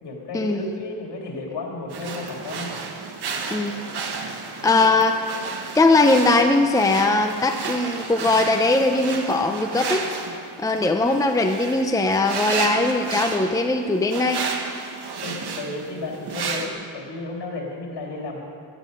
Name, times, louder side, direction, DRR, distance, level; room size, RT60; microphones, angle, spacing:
voice 1, 0.0-2.8 15.2-18.4, left 2 dB, 70° left, -1 dB, 3.1 m, -33 dB
sound 1, 1.9-16.7, right 4 dB, 65° right, 1.6 m, -32 dB
voice 2, 4.6-5.2 5.7-10.1 10.6-14.4, left 2 dB, 10° left, 4 dB, 0.7 m, -20 dB
16.0 x 12.0 x 5.4 m, 2.2 s
cardioid pair, 115°, 42 cm